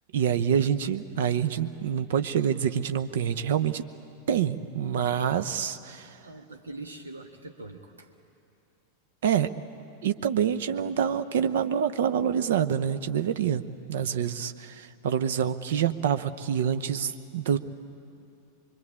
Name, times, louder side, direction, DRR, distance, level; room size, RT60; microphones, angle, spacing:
voice 1, 0.1-3.8 4.3-6.1 9.2-9.5 10.0-17.6, right 8 dB, 55° right, 11 dB, 0.9 m, -26 dB
voice 2, 6.2-8.1, right 2 dB, 75° right, 3 dB, 1.6 m, -43 dB
24.5 x 23.5 x 8.9 m, 2.7 s
figure-of-eight pair, 90°, 0 cm